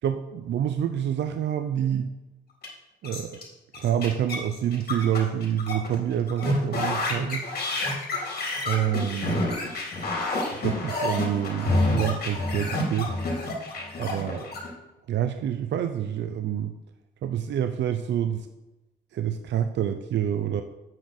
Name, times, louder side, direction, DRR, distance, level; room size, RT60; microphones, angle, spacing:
voice 1, 0.0-2.1 3.0-3.4 3.8-7.5 8.7-9.5 10.5-13.1 14.0-14.5 15.1-16.7 17.2-18.5 19.1-20.6, right 10 dB, 65° right, 8 dB, 0.7 m, -27 dB
sound 1, 2.6-2.7 3.0-3.4 3.7-6.0 6.3-14.7, left 2 dB, 50° left, 3.9 m, -28 dB
8.6 x 6.4 x 6.5 m, 1.0 s
cardioid pair, 90°, 20 cm